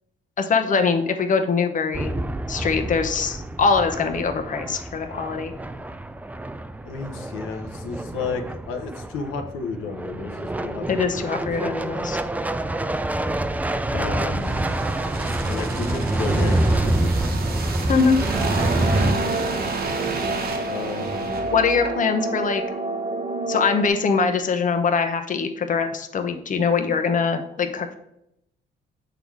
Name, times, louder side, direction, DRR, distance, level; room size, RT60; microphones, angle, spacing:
voice 1, 0.4-2.2 2.5-5.5 10.9-12.2 17.9-18.2 21.5-22.6 23.5-28.0, left 5 dB, 40° left, 6 dB, 0.8 m, -22 dB
sound 1, 1.9-19.1, right 1 dB, 10° right, 0.4 m, -26 dB
voice 2, 6.8-11.4 13.9-14.6 15.5-17.2 19.1-19.5 20.6-21.5, left 5 dB, 90° left, 5 dB, 0.9 m, -33 dB
sound 2, 14.0-22.3 22.6-22.8, right 3 dB, 50° right, 1.2 m, -32 dB
sound 3, 18.3-23.9, right 2 dB, 30° right, 0.8 m, -29 dB
6.9 x 4.0 x 4.6 m, 0.80 s
cardioid pair, 90°, 20 cm